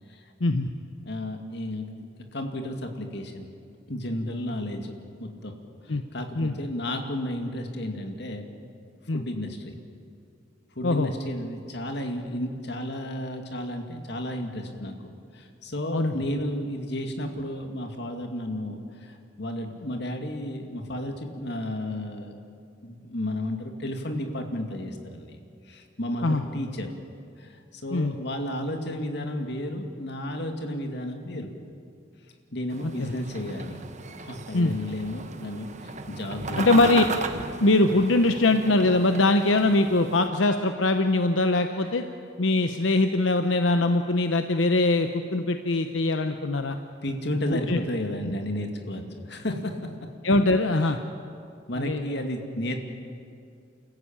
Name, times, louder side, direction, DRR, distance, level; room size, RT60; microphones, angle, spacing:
voice 1, 1.0-1.9 2.3-3.5 3.9-4.9 5.2-5.5 5.8-8.5 9.1-9.7 10.8-14.9 15.3-22.3 22.8-25.4 25.7-26.9 27.4-31.5 32.5-33.8 34.2-36.8 47.0-49.9 50.8-50.9 51.7-52.8, left 1 dB, 65° left, 4 dB, 2.4 m, -32 dB
sound 1, 32.7-40.3, right 3 dB, 40° right, 1.2 m, -36 dB
voice 2, 36.6-37.0 37.6-42.0 42.4-46.8 47.5-47.8 48.2-48.3 50.2-51.0 51.8-52.0, left 2 dB, 90° left, 7 dB, 0.9 m, -22 dB
28.5 x 14.5 x 8.8 m, 2.4 s
head